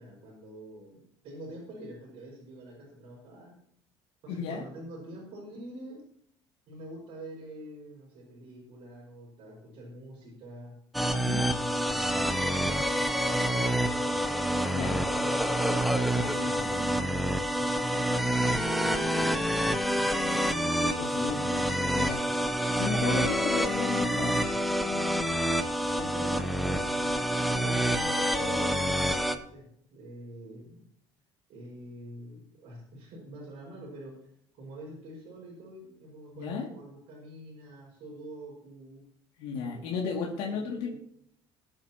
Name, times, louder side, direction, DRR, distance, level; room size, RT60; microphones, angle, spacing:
voice 1, 0.0-3.6 4.2-6.0 6.7-10.7 11.4-15.5 16.2-17.2 17.5-20.7 25.2-30.9 31.5-34.1 34.5-39.0 39.6-40.9, right 1 dB, 55° right, -6 dB, 5.6 m, -45 dB
voice 2, 4.3-4.7 11.1-11.5 14.6-15.0 16.1-16.8 20.7-22.2 22.8-24.3 36.4-36.7 39.4-40.9, left 5 dB, 85° left, -3 dB, 2.6 m, -34 dB
sound 1, 10.9-29.4, equal, ahead, 0.8 m, -27 dB
21.5 x 8.8 x 3.0 m, 0.68 s
cardioid pair, 160°, 11 cm